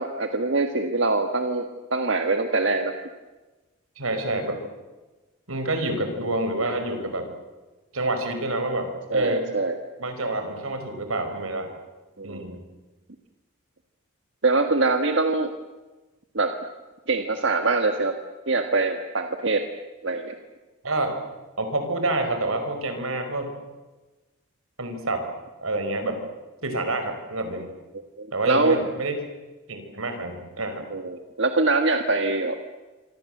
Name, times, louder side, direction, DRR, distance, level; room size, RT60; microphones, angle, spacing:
voice 1, 0.0-2.9 9.1-9.8 12.2-12.6 14.4-15.5 16.3-16.6 17.1-18.1 18.5-19.6 20.0-20.3 28.2-28.8 30.9-32.6, right 3 dB, 60° right, 6 dB, 1.6 m, -23 dB
voice 2, 4.0-4.6 5.5-7.3 7.9-9.5 10.0-11.7 12.2-12.6 20.8-21.2 21.6-23.5 24.8-25.3 25.6-26.2 26.6-27.7 28.3-29.2 29.7-30.8, right 2 dB, 85° right, 7 dB, 5.2 m, -28 dB
26.0 x 25.5 x 7.9 m, 1.2 s
head